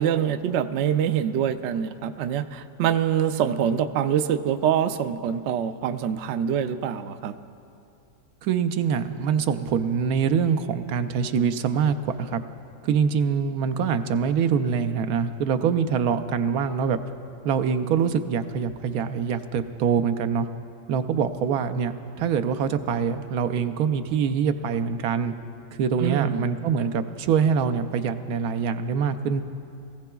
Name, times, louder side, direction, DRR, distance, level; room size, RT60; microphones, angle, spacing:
voice 1, 0.0-7.3 26.0-26.4, right 9 dB, 65° right, 10 dB, 0.7 m, -25 dB
voice 2, 8.4-12.4 12.8-17.0 17.4-20.5 20.9-25.3 25.7-29.4, right 6 dB, 90° right, 8 dB, 1.1 m, -24 dB
22.5 x 15.5 x 2.3 m, 2.7 s
omnidirectional pair, 1.5 m